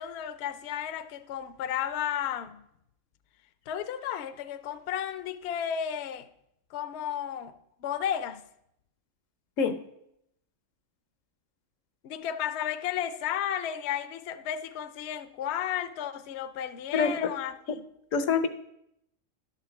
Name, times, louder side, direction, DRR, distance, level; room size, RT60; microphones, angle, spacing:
voice 1, 0.0-2.6 3.7-6.3 6.7-7.5 7.8-8.4 12.0-17.8, left 9 dB, 65° left, 0.8 m, -33 dB
voice 2, 16.9-17.3 18.1-18.5, left 5 dB, 80° left, 1.2 m, -25 dB
11.5 x 4.9 x 7.0 m
omnidirectional pair, 1.3 m